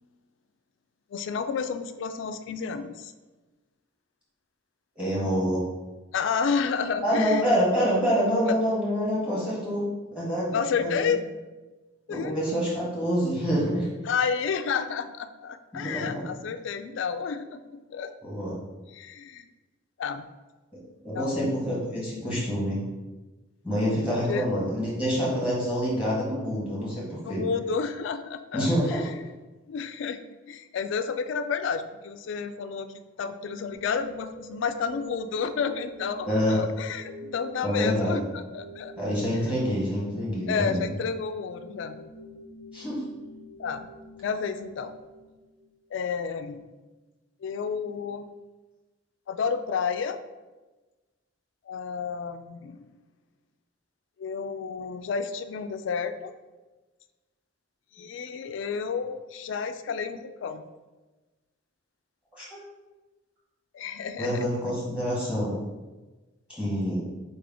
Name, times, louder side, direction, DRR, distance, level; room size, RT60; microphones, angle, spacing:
voice 1, 1.1-3.1 6.1-7.4 8.5-8.6 10.5-11.2 12.1-12.4 14.1-18.1 18.9-19.5 20.0-20.3 21.1-21.6 24.1-24.5 27.2-29.1 29.7-30.2 30.5-32.9 33.2-38.9 40.5-42.0 43.6-43.9 44.2-44.9 45.9-46.7 47.4-48.3 49.3-50.2 51.7-52.9 54.2-56.3 58.0-60.6 63.7-64.4, left 6 dB, 65° left, 10 dB, 0.3 m, -31 dB
voice 2, 4.9-5.6 7.0-9.8 10.1-11.1 12.1-13.9 15.7-16.2 18.2-18.6 20.7-22.8 23.6-27.4 28.5-29.0 36.3-36.6 37.6-38.2 39.0-40.9 42.7-43.0 62.4-62.6 64.2-65.6 66.5-67.0, equal, 5° right, -7 dB, 1.4 m, -27 dB
sound 1, 33.7-45.8, equal, 40° right, 0.6 m, -45 dB
4.2 x 3.4 x 3.7 m, 1.2 s
head